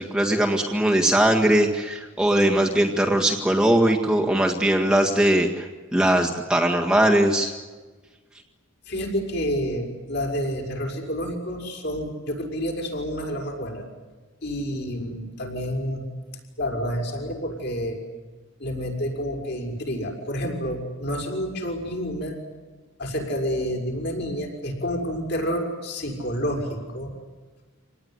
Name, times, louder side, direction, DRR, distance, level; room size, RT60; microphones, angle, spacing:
voice 1, 0.0-5.7 5.9-7.5, right 1 dB, 5° right, 0 dB, 1.8 m, -20 dB
voice 2, 8.9-13.8 14.4-16.0 16.6-18.0 18.6-22.4 23.0-27.1, equal, 50° left, 1 dB, 6.0 m, -29 dB
26.5 x 19.0 x 9.8 m, 1.3 s
head